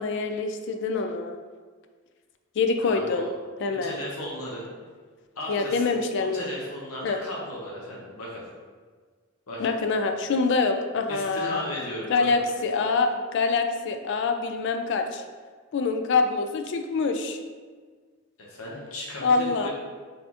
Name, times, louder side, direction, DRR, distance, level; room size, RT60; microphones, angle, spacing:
voice 1, 0.0-1.4 2.6-3.3 3.6-4.0 5.5-6.4 7.0-7.2 9.6-11.6 12.1-15.2 15.7-17.4 19.2-19.7, left 4 dB, 55° left, 6 dB, 0.3 m, -25 dB
voice 2, 2.8-3.3 3.8-4.7 5.3-6.0 6.3-8.4 9.5-9.7 11.1-12.4 18.4-19.7, left 1 dB, 85° left, -4 dB, 0.9 m, -35 dB
4.1 x 3.6 x 2.9 m, 1.5 s
head